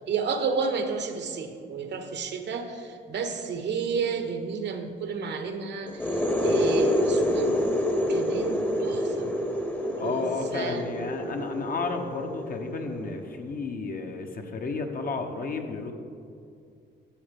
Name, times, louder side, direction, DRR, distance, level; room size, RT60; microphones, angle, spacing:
voice 1, 0.1-7.6 8.1-9.3 10.0-10.1 10.5-10.8, right 5 dB, 60° right, 6 dB, 1.0 m, -31 dB
sound 1, 5.9-13.4, left 1 dB, 10° left, 0.9 m, -27 dB
voice 2, 9.9-15.9, left 4 dB, 45° left, 4 dB, 0.9 m, -32 dB
11.5 x 6.9 x 3.5 m, 2.4 s
cardioid pair, 90°, 20 cm